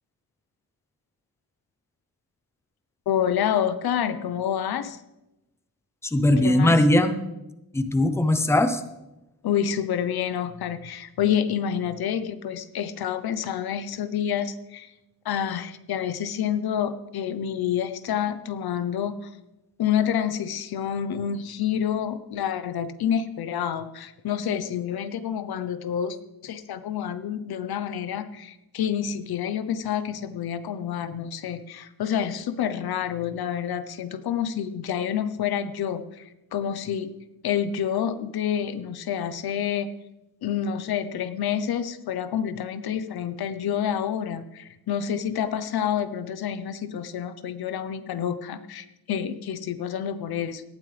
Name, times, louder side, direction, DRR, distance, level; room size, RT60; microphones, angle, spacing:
voice 1, 3.1-5.0 6.4-6.7 9.4-14.9 15.2-19.3 19.8-26.2 26.4-37.1 37.4-39.9 40.4-50.6, left 9 dB, 90° left, 11 dB, 1.0 m, -28 dB
voice 2, 6.0-7.2 7.7-8.8, left 1 dB, 5° left, 9 dB, 0.8 m, -20 dB
18.0 x 12.5 x 3.4 m, 0.94 s
wide cardioid pair, 170°, 36 cm